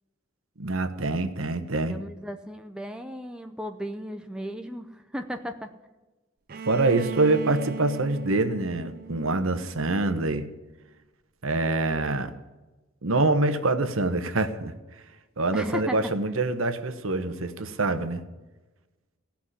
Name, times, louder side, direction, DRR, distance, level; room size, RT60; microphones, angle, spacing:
voice 1, 0.6-2.0 6.6-10.5 11.4-12.3 13.0-14.7 15.4-18.2, right 2 dB, 75° right, 9 dB, 1.1 m, -25 dB
voice 2, 1.9-5.7 15.5-16.0, equal, 5° right, 6 dB, 0.6 m, -35 dB
Bowed string instrument, 6.5-10.3, right 5 dB, 45° right, 0.5 m, -38 dB
16.0 x 5.9 x 9.9 m, 1.1 s
head